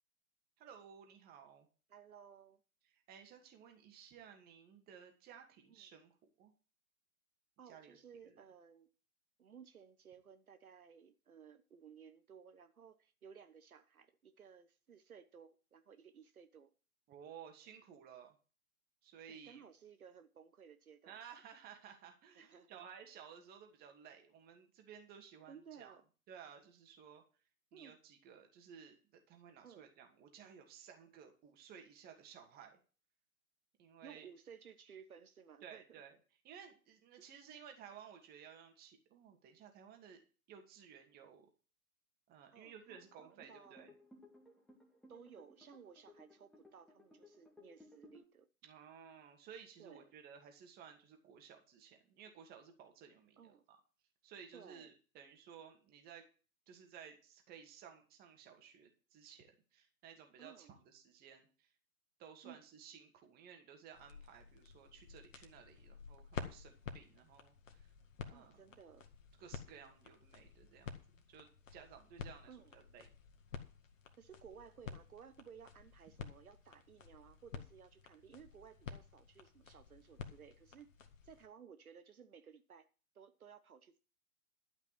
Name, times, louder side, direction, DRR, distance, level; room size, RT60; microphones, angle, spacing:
voice 1, 0.6-1.7 2.9-6.5 7.7-8.0 8.2-8.4 17.1-18.3 19.0-19.7 21.1-26.0 26.3-27.2 27.7-32.8 33.8-34.3 35.6-36.2 36.4-40.2 40.5-41.5 42.3-43.9 48.6-53.8 54.2-56.2 56.7-61.7 62.2-67.9 68.3-68.8 69.4-73.1, right 7 dB, 20° right, 2.4 m, -56 dB
voice 2, 1.9-2.6 5.7-5.9 7.6-8.9 9.4-16.7 19.3-21.2 22.3-22.8 25.5-26.0 27.7-28.0 29.6-29.9 34.0-36.0 42.5-43.8 45.1-48.5 49.8-50.1 53.4-53.6 54.5-54.9 60.4-60.7 62.4-62.6 68.3-69.0 72.5-72.7 74.2-80.9 81.2-82.9 83.1-84.0, right 7 dB, 70° right, 1.3 m, -58 dB
sound 1, 42.9-48.2, left 2 dB, ahead, 2.1 m, -62 dB
sound 2, 63.9-81.5, left 6 dB, 60° left, 2.0 m, -51 dB
12.5 x 5.9 x 7.6 m
figure-of-eight pair, 130°, 44 cm